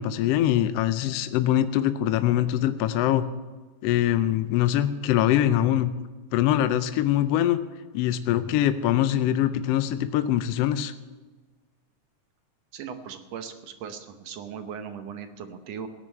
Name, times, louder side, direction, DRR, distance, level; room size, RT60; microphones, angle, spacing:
voice 1, 0.0-3.2 3.8-5.9 6.3-7.6 7.9-10.9, left 12 dB, 80° left, 12 dB, 1.4 m, -23 dB
voice 2, 12.7-15.9, right 7 dB, 65° right, 8 dB, 2.0 m, -38 dB
17.0 x 6.7 x 8.9 m, 1.3 s
omnidirectional pair, 3.3 m